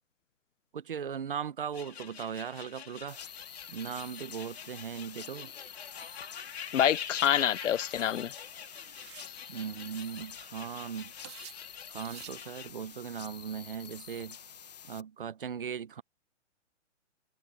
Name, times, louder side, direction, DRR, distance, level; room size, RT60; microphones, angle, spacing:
voice 1, 0.7-3.2 3.7-5.5 9.5-11.1 11.9-14.4 14.9-16.0, right 7 dB, 45° right, 1.1 m, -38 dB
sound 1, 1.7-12.7, left 7 dB, 55° left, 3.2 m, -45 dB
sound 2, 3.1-15.0, left 8 dB, 35° left, 1.2 m, -49 dB
voice 2, 6.7-8.3, left 10 dB, 80° left, 0.7 m, -27 dB
sound 3, 7.3-7.5 8.7-9.4 10.0-10.1 10.3-10.6 11.2-11.7 12.0-12.4, right 16 dB, 25° right, 3.1 m, -50 dB
hypercardioid pair, 175°, 37 cm